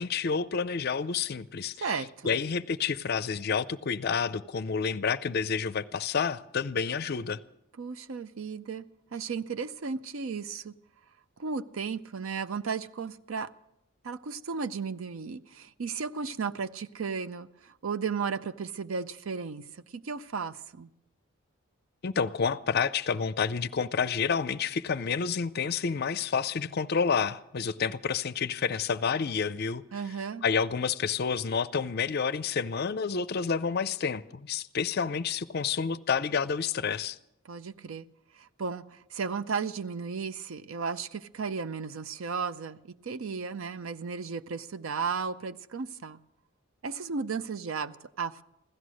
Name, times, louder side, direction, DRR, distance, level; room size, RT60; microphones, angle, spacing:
voice 1, 0.0-7.4 22.0-29.8 30.4-37.2, left 6 dB, 50° left, 0.5 m, -29 dB
voice 2, 1.8-2.4 7.8-10.7 11.4-13.5 14.0-20.9 29.9-30.4 37.4-38.1 38.3-46.2 46.8-48.4, right 5 dB, 70° right, 0.5 m, -35 dB
16.5 x 13.0 x 6.3 m
head